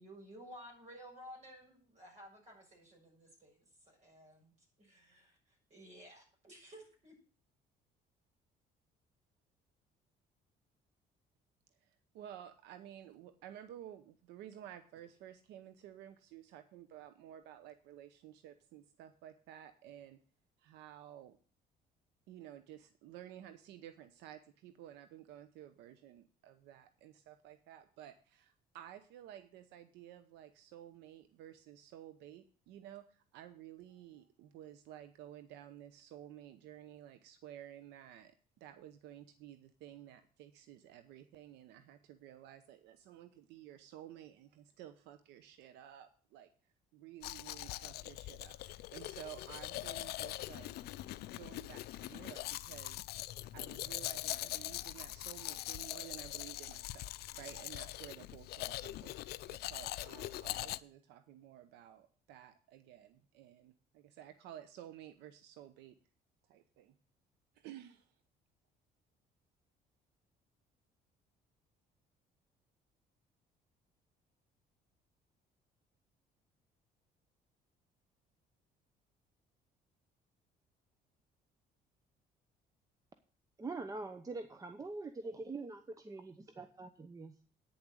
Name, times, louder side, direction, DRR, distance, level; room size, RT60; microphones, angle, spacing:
voice 1, 0.0-7.1, equal, 45° right, 0 dB, 6.9 m, -55 dB
voice 2, 11.8-20.2 20.6-21.4 22.3-46.5 46.9-50.7 51.4-53.3 53.5-57.1 57.4-66.0 66.4-66.9 67.5-68.1, right 11 dB, 90° right, 11 dB, 0.8 m, -53 dB
Domestic sounds home sounds, 47.2-60.8, left 16 dB, 70° left, 0.5 m, -42 dB
voice 3, 83.6-87.4, right 3 dB, 20° right, 9 dB, 0.8 m, -44 dB
9.5 x 7.2 x 6.3 m, 0.41 s
cardioid pair, 110°, 17 cm